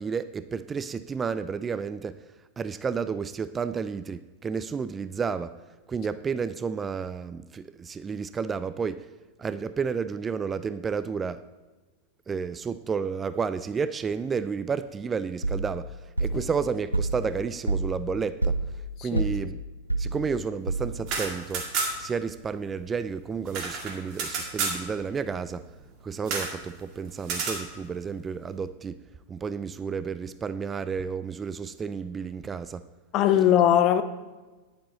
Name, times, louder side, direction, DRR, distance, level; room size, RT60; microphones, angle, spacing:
voice 1, 0.0-2.2 2.6-5.6 5.9-9.1 9.4-11.4 12.3-18.6 19.0-19.6 20.0-21.7 22.0-25.7 26.0-29.0 29.3-32.8, right 6 dB, 20° right, 0.3 m, -31 dB
sound 1, 15.4-21.2, right 2 dB, 90° right, 0.5 m, -30 dB
voice 2, 19.0-19.3 33.1-34.0, left 10 dB, 35° left, 0.7 m, -21 dB
sound 2, 20.9-22.2 22.4-22.5 22.8-24.8 26.2-26.6 27.2-27.6, right 4 dB, 40° right, 1.9 m, -31 dB
10.5 x 8.7 x 4.0 m
figure-of-eight pair, 90°, 0 cm